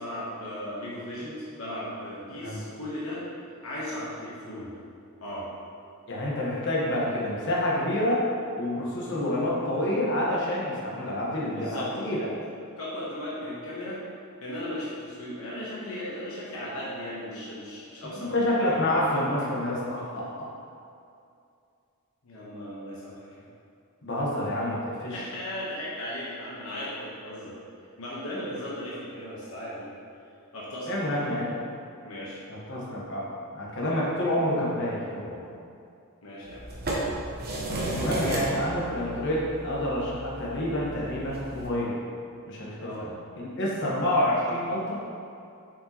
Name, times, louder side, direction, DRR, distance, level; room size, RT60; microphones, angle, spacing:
voice 1, 0.0-3.2 3.6-4.7 5.2-5.5 11.5-11.9 12.8-14.0 14.4-19.0 22.2-23.5 25.1-27.6 28.0-29.9 30.5-31.5 32.0-32.4 36.2-36.6 42.8-43.0, left 1 dB, 70° left, -7 dB, 1.1 m, -37 dB
voice 2, 6.1-8.3 8.6-12.3 18.1-20.5 24.0-25.2 30.9-31.6 32.7-33.3 33.5-35.4 37.8-42.0 42.5-43.2 43.4-45.0, left 1 dB, 55° left, -5 dB, 1.2 m, -28 dB
sound 1, 36.5-41.7, right 1 dB, 45° right, 1.0 m, -33 dB
7.1 x 4.8 x 3.0 m, 2.5 s
head